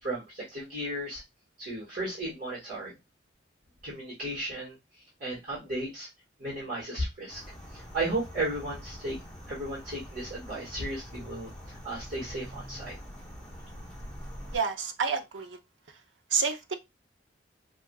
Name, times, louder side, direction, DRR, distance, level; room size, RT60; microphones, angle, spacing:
voice 1, 0.0-1.2 1.6-2.9 3.8-4.8 5.2-6.1 6.4-7.4 7.7-9.2 9.5-13.0, right 1 dB, 50° right, 1.7 m, -34 dB
sound 1, 7.3-14.6, equal, 5° left, 0.9 m, -44 dB
voice 2, 14.5-15.6 16.3-16.7, right 5 dB, 85° right, 0.6 m, -29 dB
4.7 x 2.4 x 2.3 m
head